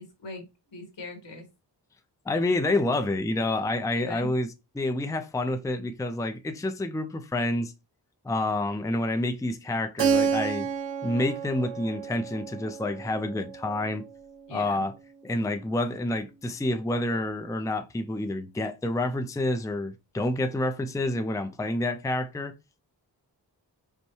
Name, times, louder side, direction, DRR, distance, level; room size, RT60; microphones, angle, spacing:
voice 1, 0.0-1.5 4.0-4.3 14.5-14.9, left 2 dB, 75° left, 1.8 m, -40 dB
voice 2, 2.3-4.5 4.8-7.7 8.2-10.7 11.0-14.0 14.5-14.9 15.2-22.5, left 1 dB, 10° left, 0.5 m, -28 dB
Keyboard (musical), 10.0-14.5, right 6 dB, 85° right, 0.8 m, -30 dB
5.4 x 2.2 x 3.0 m
cardioid pair, 60°, 43 cm